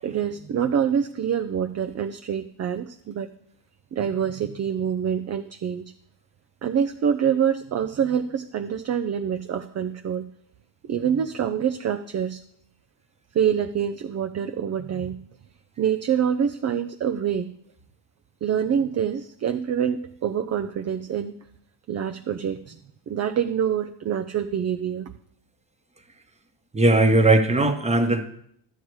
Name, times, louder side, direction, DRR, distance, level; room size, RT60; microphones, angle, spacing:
voice 1, 0.0-3.3 3.9-5.9 6.6-10.3 10.8-12.4 13.3-15.2 15.8-17.5 18.4-21.4 21.9-22.8 23.1-25.1, right 8 dB, 35° right, 8 dB, 0.5 m, -26 dB
voice 2, 26.7-28.2, right 2 dB, 15° right, 6 dB, 1.2 m, -18 dB
11.5 x 8.2 x 4.7 m, 0.69 s
cardioid pair, 110°, 46 cm